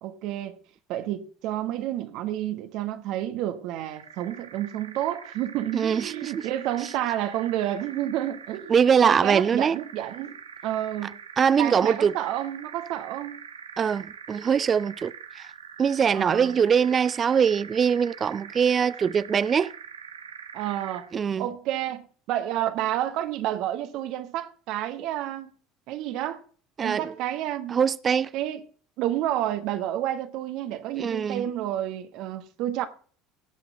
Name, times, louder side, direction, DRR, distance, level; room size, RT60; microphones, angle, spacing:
voice 1, 0.0-0.6 0.9-8.7 9.0-10.4 10.6-11.1 11.6-13.4 16.1-16.6 20.5-21.1 21.4-25.5 25.9-26.4 26.8-27.8 28.3-28.6 29.0-32.9, right 12 dB, 60° right, 1.3 m, -30 dB
sound 1, 3.8-21.2, right 7 dB, 90° right, 1.0 m, -44 dB
voice 2, 5.7-6.5 8.7-9.8 11.4-12.1 13.8-15.5 15.8-19.7 21.1-21.5 26.8-27.0 27.7-28.3 31.0-31.5, right 7 dB, 35° right, 0.5 m, -22 dB
17.0 x 6.0 x 5.6 m
hypercardioid pair, 70°, 0 cm